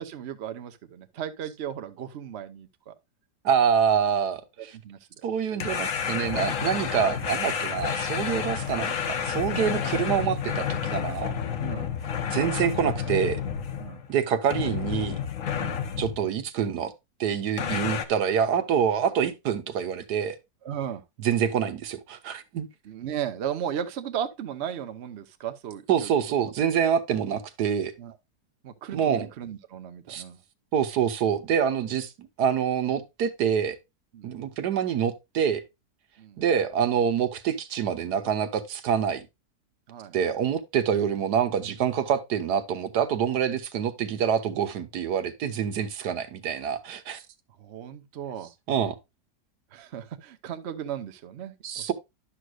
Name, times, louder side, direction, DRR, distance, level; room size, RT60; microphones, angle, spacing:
voice 1, 0.0-2.9 4.8-5.0 5.5-5.6 9.7-9.9 11.6-11.9 13.8-14.0 15.6-15.8 17.6-17.8 20.6-21.0 22.9-26.1 28.0-28.1 28.6-30.4 34.1-34.3 36.2-36.4 39.9-40.1 47.6-48.5 49.7-51.9, right 9 dB, 55° right, 0.8 m, -36 dB
voice 2, 3.4-4.8 5.2-11.3 12.3-13.4 14.1-15.2 16.0-16.9 17.2-20.4 21.2-22.7 25.9-27.9 28.9-29.3 30.1-30.2 30.7-33.8 34.2-35.6 36.4-39.2 40.1-47.2 48.7-48.9 51.6-51.9, right 8 dB, 80° right, 1.5 m, -26 dB
sound 1, 5.6-14.1 14.5-16.2 17.6-18.1, left 7 dB, 55° left, 1.2 m, -30 dB
11.0 x 6.3 x 2.4 m
omnidirectional pair, 1.7 m